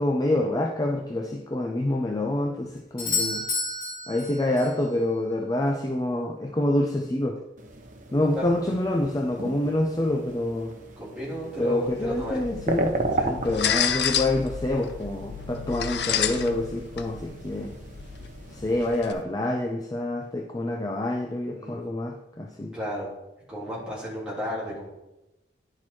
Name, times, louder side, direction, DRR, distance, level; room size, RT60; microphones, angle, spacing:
voice 1, 0.0-3.5 4.1-7.4 8.1-10.7 11.6-13.0 13.2-17.7 18.5-22.7, left 1 dB, 20° left, 2 dB, 0.4 m, -27 dB
Doorbell, 3.0-4.8 8.9-9.0, left 3 dB, 45° left, 2.2 m, -30 dB
sound 1, 7.6-19.2, right 2 dB, 45° right, 0.8 m, -35 dB
voice 2, 11.0-12.4 13.1-13.3 21.6-21.8 22.7-23.1 23.5-25.0, equal, 5° right, -8 dB, 3.1 m, -33 dB
sound 2, 11.9-19.1, left 8 dB, 70° left, 0.6 m, -31 dB
10.0 x 4.5 x 4.4 m, 0.95 s
head